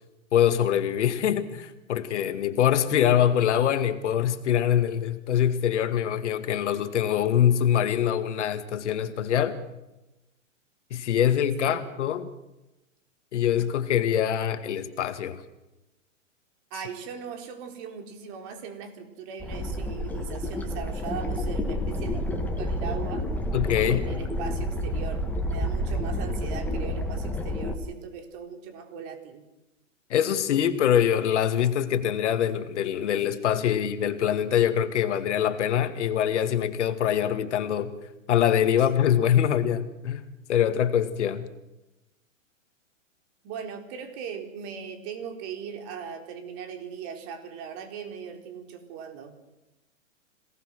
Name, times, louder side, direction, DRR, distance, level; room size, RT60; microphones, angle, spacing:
voice 1, 0.3-9.6 10.9-12.3 13.3-15.4 23.5-24.0 30.1-37.9 38.3-41.5, left 9 dB, 65° left, 10 dB, 2.1 m, -24 dB
voice 2, 16.7-23.3 23.8-29.4 38.9-39.0 43.4-49.3, right 7 dB, 40° right, 5 dB, 4.1 m, -39 dB
sound 1, 19.4-27.7, left 1 dB, 5° left, 2.6 m, -29 dB
26.5 x 18.5 x 6.3 m, 0.97 s
hypercardioid pair, 125°, 38 cm